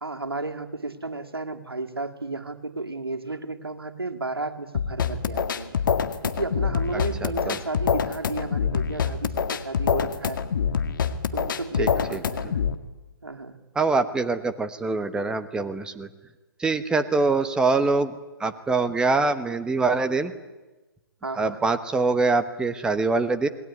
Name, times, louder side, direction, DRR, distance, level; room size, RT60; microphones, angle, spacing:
voice 1, 0.0-5.8 6.2-10.4 11.3-12.6 13.2-13.6 21.2-21.6, right 3 dB, 90° right, 5 dB, 2.4 m, -33 dB
sound 1, 4.7-12.7, left 7 dB, 60° left, 2.0 m, -25 dB
voice 2, 6.9-7.6 11.8-12.2 13.7-16.1 16.6-18.1 18.4-20.3 21.4-23.5, right 3 dB, 5° right, 9 dB, 1.1 m, -24 dB
27.5 x 20.0 x 9.7 m, 1.1 s
figure-of-eight pair, 135°, 12 cm